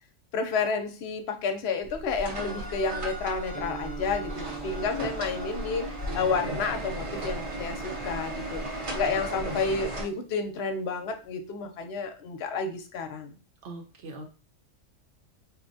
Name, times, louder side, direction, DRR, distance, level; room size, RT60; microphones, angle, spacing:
voice 1, 0.3-13.4, left 4 dB, 65° left, 7 dB, 0.8 m, -31 dB
sound 1, 1.8-10.0, right 1 dB, 40° right, 0.5 m, -35 dB
Guitar, 3.5-11.3, right 8 dB, 35° left, 0.5 m, -45 dB
voice 2, 13.6-14.3, right 2 dB, 70° right, 2 dB, 1.0 m, -41 dB
4.3 x 2.2 x 2.5 m, 0.35 s
omnidirectional pair, 1.3 m